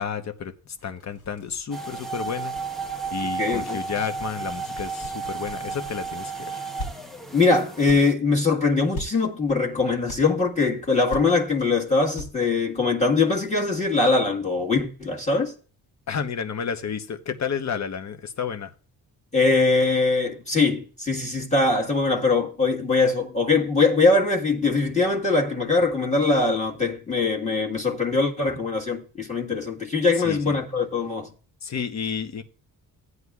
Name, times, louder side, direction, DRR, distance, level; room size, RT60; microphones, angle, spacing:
voice 1, 0.0-2.5 3.1-6.6 16.1-18.7 30.2-30.6 31.6-32.4, left 6 dB, 45° left, 1.0 m, -31 dB
sound 1, 0.8-6.3 6.8-6.9 7.3-7.4 7.9-8.0 8.9-9.1 10.0-10.2 10.5-10.6 11.1-11.2 11.6-11.7 12.1-12.3 12.6-12.7, left 1 dB, 85° left, 3.4 m, -40 dB
sound 2, 1.7-8.1, right 5 dB, ahead, 0.9 m, -33 dB
voice 2, 3.4-3.8 7.3-15.5 19.3-31.3, left 3 dB, 20° left, 1.6 m, -22 dB
16.0 x 9.6 x 2.4 m
cardioid pair, 120°, 37 cm